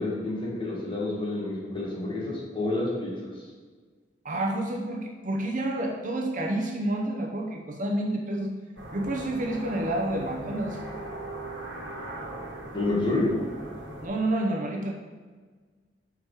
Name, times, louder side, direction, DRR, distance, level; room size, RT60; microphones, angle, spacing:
voice 1, 0.0-3.1 12.7-13.3, left 2 dB, 30° left, -5 dB, 1.8 m, -29 dB
voice 2, 4.2-8.5 8.9-10.8 14.0-14.9, right 1 dB, 45° right, 1 dB, 0.8 m, -29 dB
sound 1, 8.8-14.1, right 1 dB, 85° right, 1.3 m, -39 dB
5.9 x 4.8 x 4.8 m, 1.4 s
head